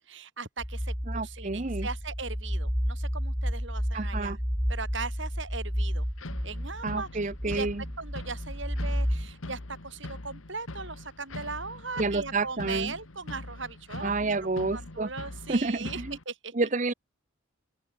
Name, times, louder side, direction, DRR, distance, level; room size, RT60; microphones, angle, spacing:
voice 1, 0.1-4.4 4.7-6.1 6.4-7.7 8.0-16.7, right 4 dB, 65° right, 5.8 m, -39 dB
sound 1, 0.6-9.3, equal, ahead, 2.0 m, -32 dB
voice 2, 1.1-1.9 3.9-4.4 6.8-7.8 12.0-12.9 14.0-15.1 15.5-16.2 16.6-16.9, right 3 dB, 35° right, 0.8 m, -29 dB
sound 2, 6.2-16.2, left 2 dB, 80° left, 1.8 m, -42 dB
open air
head